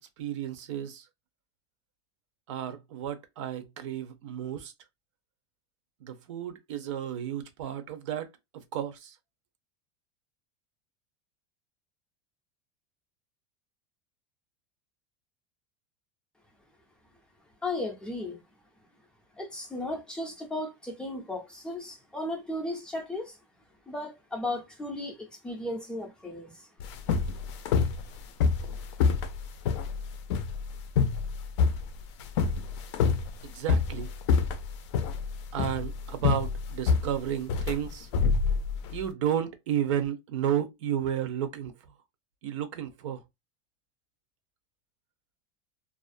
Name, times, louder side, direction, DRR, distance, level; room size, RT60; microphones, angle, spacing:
voice 1, 0.2-1.1 2.5-4.7 6.0-9.2 33.4-34.1 35.5-38.1 38.9-41.7 42.4-43.2, right 10 dB, 85° right, 0.6 m, -32 dB
voice 2, 17.6-18.4 19.4-23.4 23.9-26.7, left 1 dB, 5° left, 0.4 m, -35 dB
sound 1, 26.8-39.0, left 5 dB, 75° left, 0.4 m, -27 dB
2.4 x 2.0 x 2.4 m
supercardioid pair, 170°, 15 cm